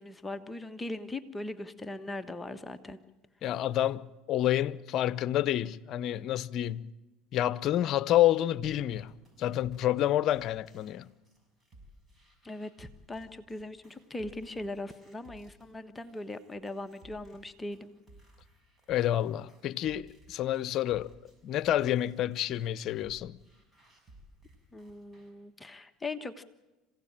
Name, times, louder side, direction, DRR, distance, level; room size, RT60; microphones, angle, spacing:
voice 1, 0.0-3.0 12.4-17.9 24.7-26.4, left 2 dB, 15° left, 1.3 m, -40 dB
voice 2, 3.4-6.9 7.3-9.1 9.4-11.1 18.9-21.1 21.4-23.4, left 12 dB, 55° left, 0.8 m, -28 dB
sound 1, 8.6-25.3, right 1 dB, 25° right, 6.4 m, -59 dB
26.5 x 16.5 x 8.9 m
supercardioid pair, 90°, 0 cm